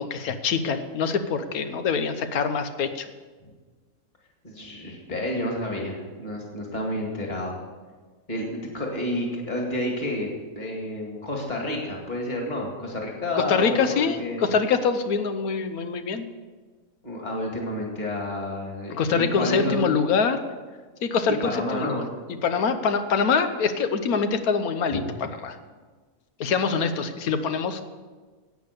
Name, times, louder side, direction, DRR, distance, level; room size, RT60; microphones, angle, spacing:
voice 1, 0.0-3.1 13.4-16.2 18.9-20.4 21.0-22.0 22.4-25.6 26.4-27.9, left 5 dB, 80° left, 9 dB, 1.4 m, -24 dB
voice 2, 4.4-7.6 8.3-14.4 17.0-19.8 21.4-22.1 24.9-25.0, left 1 dB, 30° left, 0 dB, 2.3 m, -30 dB
11.0 x 8.5 x 6.8 m, 1.4 s
omnidirectional pair, 1.5 m